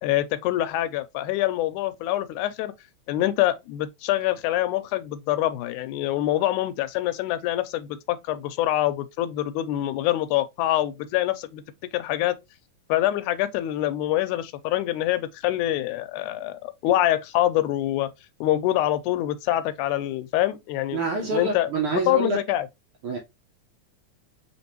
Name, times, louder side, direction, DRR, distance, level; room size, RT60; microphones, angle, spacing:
voice 1, 0.0-2.7 3.1-11.6 11.9-12.4 12.9-18.1 18.4-22.7, left 14 dB, 85° left, 2.1 m, -25 dB
voice 2, 20.9-22.4 23.0-23.2, right 4 dB, 70° right, 1.3 m, -26 dB
5.2 x 3.3 x 2.9 m
omnidirectional pair, 3.5 m